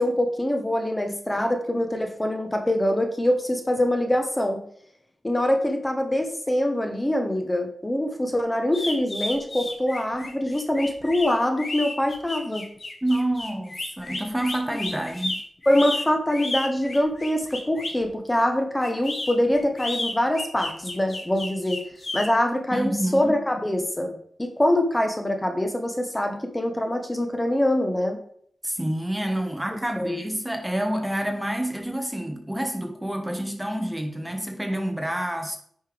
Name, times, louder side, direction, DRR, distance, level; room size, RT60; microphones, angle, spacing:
voice 1, 0.0-4.6 5.2-12.7 14.7-14.8 15.7-21.8 22.1-24.1 24.4-28.2 30.0-30.2, left 1 dB, 15° left, 5 dB, 1.0 m, -24 dB
sound 1, 8.7-18.0 18.8-22.3, left 2 dB, 45° left, 1.6 m, -32 dB
voice 2, 13.0-15.4 22.7-23.3 28.6-35.6, right 1 dB, 10° right, 5 dB, 1.0 m, -28 dB
9.6 x 5.4 x 3.4 m, 0.62 s
wide cardioid pair, 95°, 0 cm